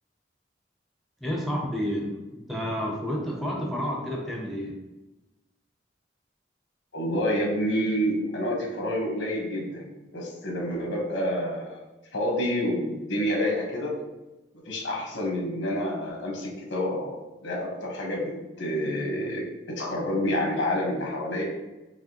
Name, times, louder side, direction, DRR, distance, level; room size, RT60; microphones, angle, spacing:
voice 1, 1.2-4.7, equal, ahead, -2 dB, 0.6 m, -30 dB
voice 2, 6.9-11.8 12.1-13.9 14.6-17.2 17.4-21.4, equal, 90° left, -1 dB, 1.2 m, -28 dB
4.8 x 3.0 x 2.9 m, 1.0 s
head